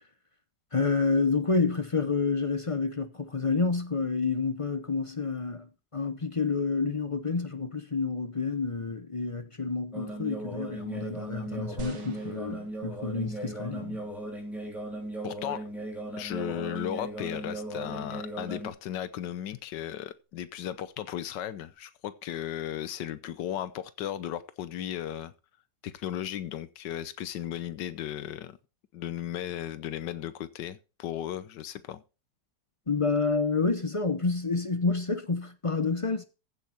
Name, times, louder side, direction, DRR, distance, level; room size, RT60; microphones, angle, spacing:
voice 1, 0.7-14.0 32.9-36.2, left 4 dB, 35° left, 0.5 m, -29 dB
sound 1, 9.9-18.7, right 1 dB, ahead, 3.5 m, -37 dB
sound 2, 11.8-13.3 14.0-14.1, right 3 dB, 80° right, 2.5 m, -45 dB
voice 2, 15.2-15.6 16.2-25.3 25.8-28.6 28.9-32.0, left 11 dB, 85° left, 1.4 m, -35 dB
15.0 x 6.8 x 4.3 m
omnidirectional pair, 1.8 m